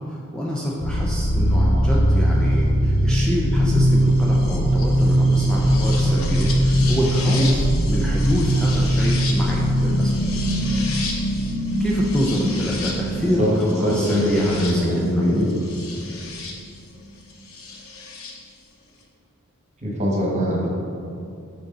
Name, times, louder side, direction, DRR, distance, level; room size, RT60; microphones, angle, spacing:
voice 1, 0.1-10.2 11.8-15.3, equal, 5° left, -5 dB, 0.5 m, -26 dB
sound 1, 0.8-16.5 17.7-18.3, equal, 75° left, 0.9 m, -21 dB
voice 2, 13.2-15.4 19.8-20.7, equal, 35° right, -3 dB, 1.4 m, -22 dB
6.3 x 4.1 x 5.4 m, 2.5 s
head